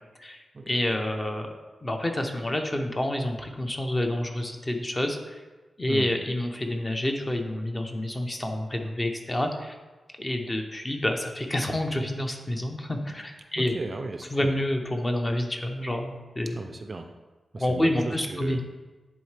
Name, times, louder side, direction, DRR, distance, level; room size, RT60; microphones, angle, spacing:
voice 1, 0.2-1.5 1.8-5.4 5.8-9.7 10.2-13.7 14.3-16.6 17.6-18.6, left 1 dB, 20° left, 4 dB, 0.7 m, -28 dB
voice 2, 13.6-14.5 16.5-17.1 17.5-18.6, right 3 dB, 35° right, 6 dB, 0.4 m, -35 dB
10.5 x 3.7 x 3.3 m, 1.2 s
wide cardioid pair, 130°, 0 cm